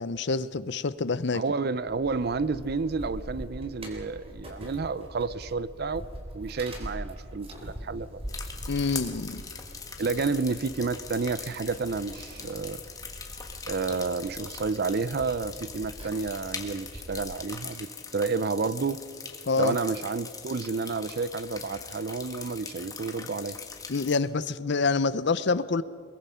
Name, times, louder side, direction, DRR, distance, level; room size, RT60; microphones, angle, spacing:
voice 1, 0.0-1.4 8.7-9.4 19.5-19.8 23.9-25.8, left 4 dB, 55° left, 16 dB, 0.6 m, -27 dB
voice 2, 1.3-6.0 6.3-8.2 10.0-12.8 13.7-19.0 19.6-23.6, right 4 dB, 50° right, 17 dB, 0.5 m, -30 dB
sound 1, 1.9-17.3, equal, 30° right, 3.6 m, -43 dB
sound 2, 8.3-24.2, left 5 dB, 15° left, 1.6 m, -41 dB
22.5 x 22.0 x 5.6 m, 2.2 s
head